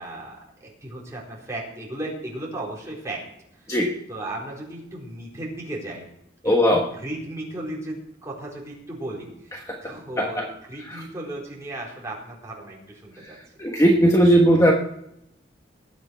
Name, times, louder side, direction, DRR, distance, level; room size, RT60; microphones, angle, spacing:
voice 1, 0.0-3.2 3.6-3.8 4.1-6.0 6.4-13.4, right 1 dB, 15° right, -4 dB, 4.2 m, -35 dB
voice 2, 6.4-6.9 9.7-10.5 10.9-11.0 13.6-14.7, equal, 15° left, 0 dB, 1.2 m, -19 dB
19.5 x 8.3 x 4.6 m, 0.79 s
head